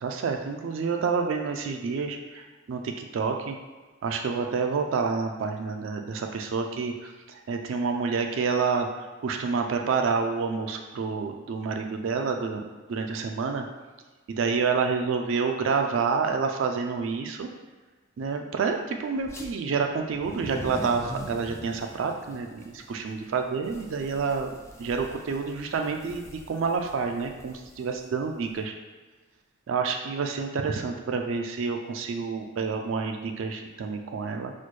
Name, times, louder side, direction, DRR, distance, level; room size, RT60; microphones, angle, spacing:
voice 1, 0.0-3.6 4.0-12.6 12.9-13.7 14.3-17.5 18.2-24.5 24.8-28.7 29.7-34.5, right 5 dB, 65° right, 4 dB, 0.3 m, -28 dB
sound 1, 19.2-19.5 20.0-28.6, equal, 15° left, 0.3 m, -43 dB
4.2 x 2.2 x 3.1 m, 1.3 s
head